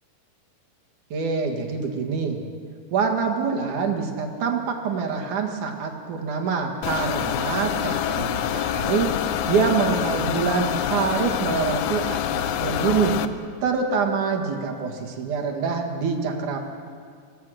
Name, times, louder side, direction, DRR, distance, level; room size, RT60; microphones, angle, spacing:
voice 1, 1.1-2.4 2.9-9.1 9.5-13.2 13.6-16.6, right 5 dB, 65° right, 3 dB, 3.1 m, -25 dB
sound 1, 6.8-13.3, left 10 dB, 75° left, 2.0 m, -26 dB
26.5 x 17.0 x 6.3 m, 2.1 s
omnidirectional pair, 4.0 m